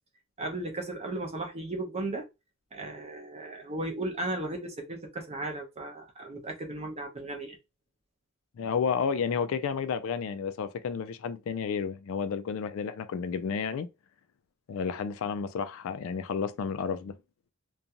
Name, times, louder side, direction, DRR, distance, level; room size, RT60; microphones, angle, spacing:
voice 1, 0.4-2.3 2.7-7.6, right 2 dB, 30° right, 0.6 m, -35 dB
voice 2, 8.6-13.9 14.7-17.1, left 6 dB, 60° left, 0.3 m, -31 dB
2.5 x 2.3 x 2.7 m
head